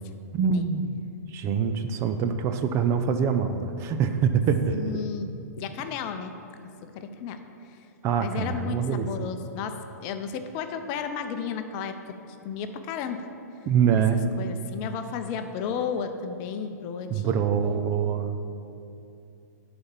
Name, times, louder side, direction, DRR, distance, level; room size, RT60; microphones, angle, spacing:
voice 1, 0.3-1.0 1.3-4.8 8.0-9.3 13.7-14.2 17.1-18.4, right 7 dB, 30° right, 8 dB, 0.6 m, -25 dB
voice 2, 4.7-5.3 5.6-6.3 6.8-7.4 8.2-12.0 12.4-13.3 14.4-17.5, left 6 dB, 40° left, 7 dB, 0.7 m, -33 dB
11.0 x 4.3 x 7.3 m, 2.7 s
hypercardioid pair, 115°, 9 cm